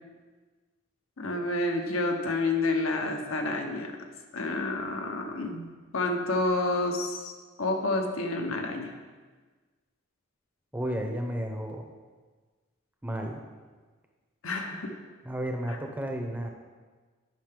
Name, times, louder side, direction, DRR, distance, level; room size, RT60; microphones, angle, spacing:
voice 1, 1.2-4.0 4.3-5.7 5.9-7.3 7.6-8.9 14.4-15.0 15.7-15.8, left 2 dB, 85° left, 3 dB, 1.0 m, -29 dB
voice 2, 10.7-11.9 13.0-13.4 15.2-16.5, right 1 dB, 10° right, 3 dB, 0.6 m, -32 dB
10.0 x 5.6 x 3.6 m, 1.4 s
head